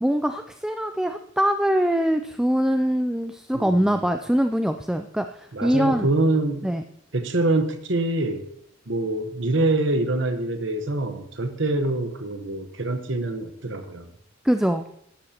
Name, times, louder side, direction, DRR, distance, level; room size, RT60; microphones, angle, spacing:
voice 1, 0.0-6.1 6.6-6.8 14.4-14.8, equal, 5° right, 7 dB, 0.3 m, -23 dB
voice 2, 3.5-3.9 5.5-6.7 7.1-8.4 8.9-14.1, right 2 dB, 65° right, 7 dB, 1.1 m, -25 dB
12.5 x 11.5 x 2.9 m, 0.71 s
head